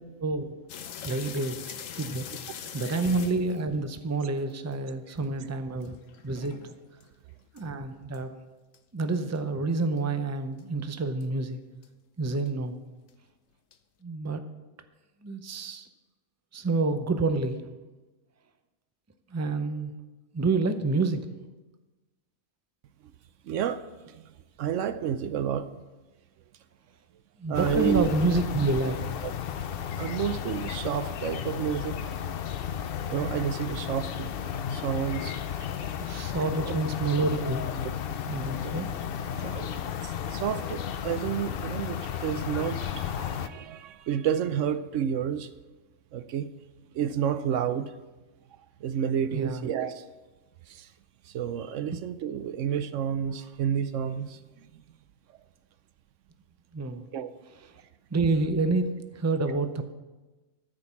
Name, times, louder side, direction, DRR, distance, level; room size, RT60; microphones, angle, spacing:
sound 1, 0.7-4.8 5.2-5.3 5.8-7.0 7.6-7.7 8.1-8.2 8.7-8.8 9.4-9.5 10.0-10.1 10.6-10.7 11.2-11.3 11.8-11.9 12.5-12.6 13.1-13.2 13.7-13.8, left 8 dB, 80° left, 1.1 m, -42 dB
voice 1, 1.0-1.6 2.0-2.3 2.7-6.0 6.2-6.6 7.5-8.3 8.9-11.6 12.2-12.7 14.0-14.4 15.2-15.9 16.5-17.6 19.3-19.9 20.3-21.2 27.4-29.0 36.0-37.7 38.3-38.9 49.3-49.7 56.7-57.1 58.1-59.8, right 3 dB, 25° right, 8 dB, 0.3 m, -28 dB
voice 2, 23.4-24.2 24.6-25.7 27.5-28.1 29.2-29.3 30.0-32.0 33.1-34.3 34.7-35.4 36.5-36.8 37.4-37.5 38.6-38.7 39.4-45.5 46.1-46.5 46.9-48.0 48.8-50.0 50.7-50.9 51.3-54.7 57.1-57.3 59.5-59.6, right 9 dB, 75° right, 12 dB, 0.9 m, -30 dB
sound 2, 27.5-43.5, left 8 dB, 60° left, 0.7 m, -33 dB
13.5 x 5.2 x 7.1 m, 1.2 s
omnidirectional pair, 1.3 m